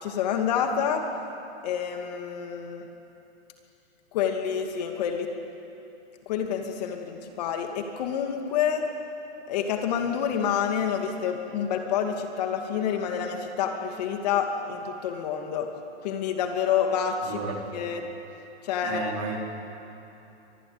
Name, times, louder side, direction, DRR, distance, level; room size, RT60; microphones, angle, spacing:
voice 1, 0.0-1.0 1.6-2.9 4.1-5.3 6.3-8.8 9.5-15.7 16.0-17.4 17.7-18.0 18.6-19.4, left 8 dB, 35° left, 4 dB, 2.4 m, -28 dB
voice 2, 17.2-17.7 18.8-19.4, right 4 dB, 35° right, 0 dB, 4.5 m, -33 dB
24.5 x 22.5 x 9.7 m, 2.8 s
hypercardioid pair, 170°, 34 cm